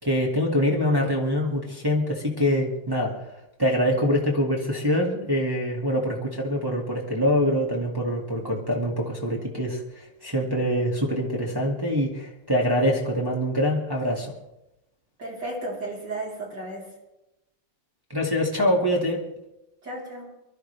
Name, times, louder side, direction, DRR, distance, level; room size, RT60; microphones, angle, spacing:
voice 1, 0.0-3.2 3.6-14.3 18.1-19.2, equal, 10° right, -3 dB, 2.0 m, -24 dB
voice 2, 15.2-16.9 19.8-20.3, right 1 dB, 45° right, -6 dB, 4.5 m, -34 dB
23.5 x 13.0 x 3.4 m, 0.94 s
omnidirectional pair, 2.4 m